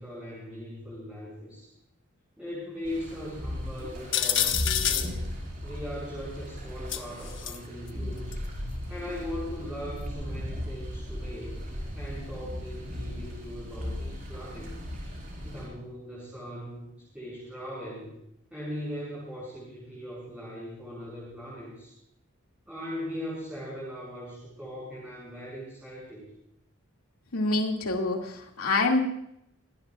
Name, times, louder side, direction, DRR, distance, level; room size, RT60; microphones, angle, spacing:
voice 1, 0.0-1.7 2.4-5.2 5.6-8.4 8.9-11.6 11.9-14.7 15.4-16.9 17.1-18.2 18.5-21.9 22.6-26.2, equal, 5° right, -8 dB, 6.7 m, -39 dB
sound 1, 2.8-15.7, equal, 40° right, 5.9 m, -37 dB
sound 2, 4.1-5.1 6.9-7.6 8.3-8.4 10.1-10.2, left 10 dB, 55° left, 1.3 m, -27 dB
voice 2, 27.3-29.0, left 2 dB, 85° left, 1 dB, 2.4 m, -26 dB
26.0 x 19.0 x 2.5 m, 0.77 s
head